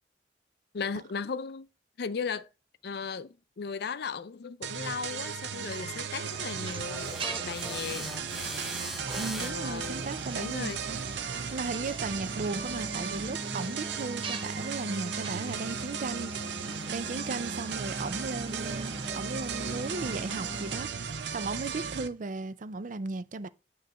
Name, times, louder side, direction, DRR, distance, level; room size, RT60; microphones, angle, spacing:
voice 1, 0.7-1.7 2.0-2.5 2.8-7.2 7.4-8.1 9.4-10.1 10.4-10.8, left 5 dB, 65° left, 0.5 m, -36 dB
sound 1, 4.6-22.1, right 6 dB, 80° right, 0.7 m, -36 dB
sound 2, 6.2-20.8, right 2 dB, 30° right, 0.9 m, -41 dB
sound 3, 6.9-12.0, equal, ahead, 0.7 m, -43 dB
voice 2, 9.2-11.1 11.5-16.3 16.9-20.9 21.3-23.5, right 3 dB, 50° right, 0.5 m, -36 dB
9.2 x 3.2 x 5.4 m
head